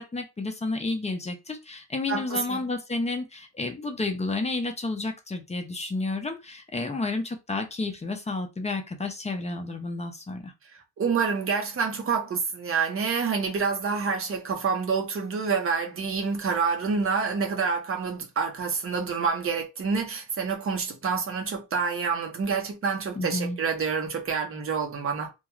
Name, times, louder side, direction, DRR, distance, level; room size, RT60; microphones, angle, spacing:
voice 1, 0.0-10.5 23.2-23.6, left 3 dB, 15° left, 0.4 m, -31 dB
voice 2, 2.1-2.6 11.0-25.3, right 5 dB, 30° right, 0.7 m, -27 dB
2.4 x 2.2 x 3.0 m
cardioid pair, 125°, 43 cm